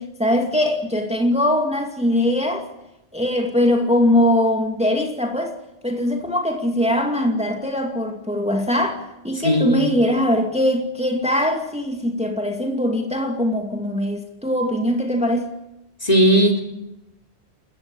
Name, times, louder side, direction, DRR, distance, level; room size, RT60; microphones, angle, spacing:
voice 1, 0.0-2.6 3.1-5.5 5.8-9.0 9.2-15.5, left 1 dB, 5° right, 2.3 m, -21 dB
voice 2, 9.4-9.9 16.0-16.6, equal, 35° left, 3.9 m, -17 dB
29.5 x 15.0 x 8.6 m
omnidirectional pair, 1.2 m